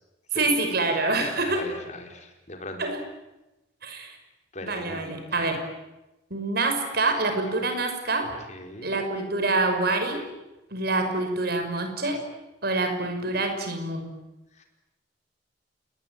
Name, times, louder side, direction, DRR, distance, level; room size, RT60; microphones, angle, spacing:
voice 1, 0.3-1.6 2.8-3.0 3.8-4.2 4.6-5.7 6.3-8.3 8.8-10.3 10.7-12.2 12.6-14.2, right 2 dB, 60° right, 6 dB, 5.9 m, -26 dB
voice 2, 1.4-2.8 4.5-5.4 8.2-9.0 14.6-14.7, left 2 dB, 40° left, 3 dB, 4.9 m, -40 dB
29.0 x 21.0 x 9.4 m, 0.99 s
head